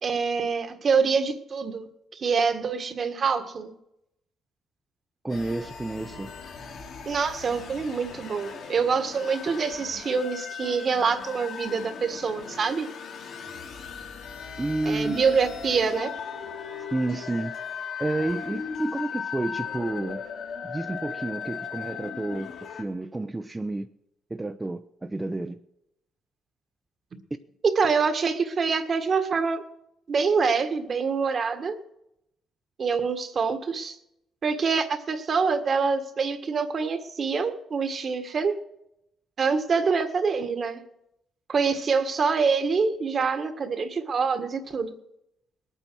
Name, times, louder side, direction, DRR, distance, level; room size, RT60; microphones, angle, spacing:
voice 1, 0.0-3.7 7.0-12.9 14.8-16.1 27.7-29.6 30.1-31.7 32.8-33.9 34.4-38.5 39.4-40.8 41.5-44.9, right 5 dB, 45° right, 8 dB, 1.7 m, -25 dB
voice 2, 5.2-6.3 14.6-15.2 16.9-17.5 18.0-20.2 20.6-23.9 24.3-25.6, right 2 dB, 15° right, 6 dB, 0.7 m, -30 dB
sound 1, 5.3-22.8, left 6 dB, 70° left, 3.1 m, -38 dB
20.0 x 9.2 x 6.2 m, 0.81 s
cardioid pair, 90°, 0 cm